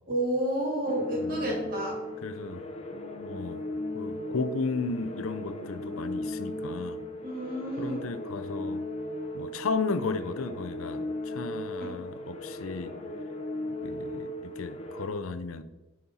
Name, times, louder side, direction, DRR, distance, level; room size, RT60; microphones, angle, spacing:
voice 1, 0.1-2.0 7.2-8.0 11.7-11.9, right 1 dB, 45° right, 3.0 m, -30 dB
sound 1, 0.9-15.1, left 1 dB, 30° left, 1.0 m, -37 dB
voice 2, 1.2-1.6 2.2-2.6 3.2-3.6 3.9-7.0 7.8-8.8 9.3-12.9 13.8-15.6, left 4 dB, 90° left, 0.6 m, -34 dB
8.6 x 4.4 x 5.5 m
head